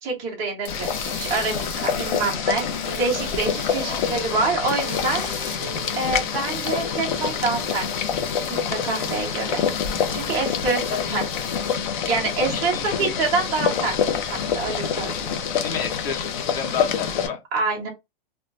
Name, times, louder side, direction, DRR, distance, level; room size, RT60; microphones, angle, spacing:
voice 1, 0.0-5.6 6.0-8.2 8.5-9.6 10.1-11.2 12.0-14.0 14.2-15.3 17.5-17.9, right 4 dB, 10° right, 0.4 m, -26 dB
sound 1, 0.6-4.4 4.7-11.8, left 3 dB, 25° left, 0.7 m, -40 dB
Boiling, 0.7-17.3, left 7 dB, 55° left, 0.5 m, -26 dB
sound 2, 2.0-8.9 9.5-9.8, right 5 dB, 45° right, 0.7 m, -43 dB
voice 2, 3.7-4.1 10.9-11.2 12.5-13.3 15.6-17.4, left 6 dB, 80° left, 1.0 m, -31 dB
2.2 x 2.1 x 3.8 m
supercardioid pair, 165°, 29 cm